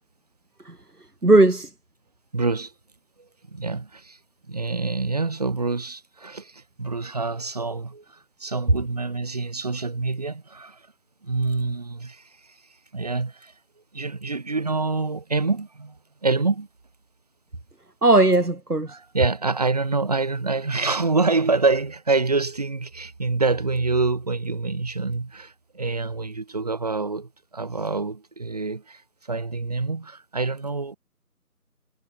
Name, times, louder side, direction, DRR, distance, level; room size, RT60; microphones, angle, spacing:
voice 1, 1.2-1.7 18.0-19.0, right 2 dB, 75° right, 4.5 m, -17 dB
voice 2, 2.3-2.7 3.5-4.2 4.5-10.8 11.2-12.3 12.9-13.5 13.9-16.7 18.9-29.0 29.3-31.0, right 3 dB, 25° right, 7.9 m, -26 dB
figure-of-eight pair, 175°, 46 cm